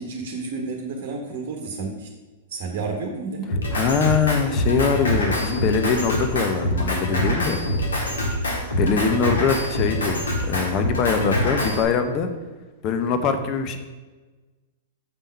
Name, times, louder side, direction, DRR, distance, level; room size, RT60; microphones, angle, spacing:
voice 1, 0.0-2.1 2.5-3.5, right 4 dB, 55° right, 2 dB, 1.0 m, -31 dB
Drum kit, 3.5-11.8, equal, 80° left, 1.7 m, -25 dB
voice 2, 3.7-7.6 8.8-12.3 12.8-13.8, left 5 dB, 40° left, 7 dB, 0.8 m, -23 dB
6.8 x 3.6 x 5.6 m, 1.3 s
hypercardioid pair, 110°, 0 cm